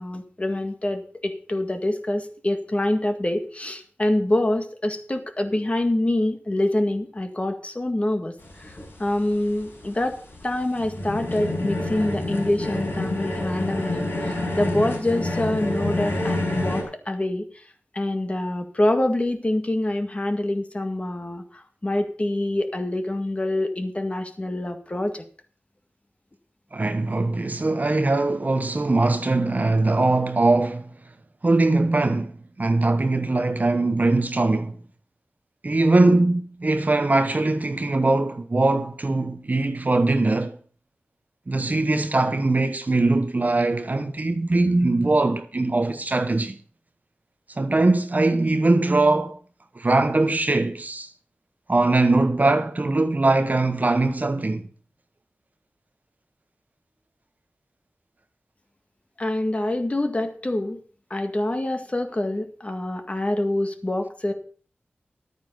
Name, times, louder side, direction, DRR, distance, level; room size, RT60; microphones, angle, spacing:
voice 1, 0.0-10.2 10.4-17.6 17.9-25.2 59.2-60.8 61.1-64.3, left 1 dB, 30° left, 1.8 m, -26 dB
sound 1, 8.4-16.8, left 1 dB, 70° left, 5.3 m, -28 dB
voice 2, 26.7-30.9 31.4-32.3 32.6-34.8 35.6-40.6 41.5-46.6 47.5-49.4 49.7-51.1 51.7-54.7, right 2 dB, 40° right, 1.0 m, -21 dB
11.5 x 9.1 x 5.3 m
cardioid pair, 55°, 4 cm